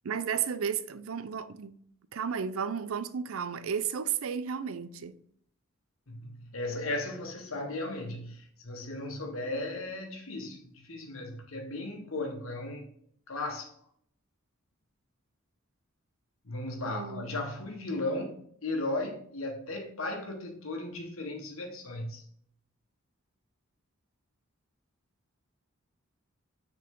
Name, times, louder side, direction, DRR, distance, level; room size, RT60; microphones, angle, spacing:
voice 1, 0.0-1.8 2.1-5.2 16.9-17.3, right 7 dB, 85° right, 0.5 m, -33 dB
voice 2, 6.1-12.9 13.3-13.7 16.4-22.2, left 2 dB, 85° left, 1.3 m, -36 dB
6.5 x 4.0 x 3.7 m
head